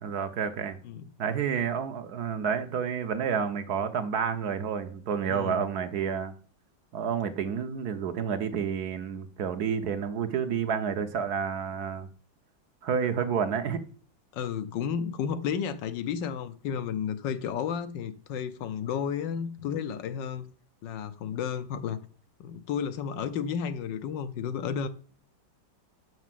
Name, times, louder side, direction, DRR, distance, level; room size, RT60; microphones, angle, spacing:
voice 1, 0.0-0.8 1.2-6.3 6.9-12.1 12.8-13.8, right 7 dB, 65° right, 1.2 m, -30 dB
voice 2, 5.3-5.7 14.3-20.5 20.8-22.0 22.4-24.9, left 7 dB, 75° left, 1.4 m, -32 dB
6.5 x 6.1 x 7.5 m
omnidirectional pair, 2.0 m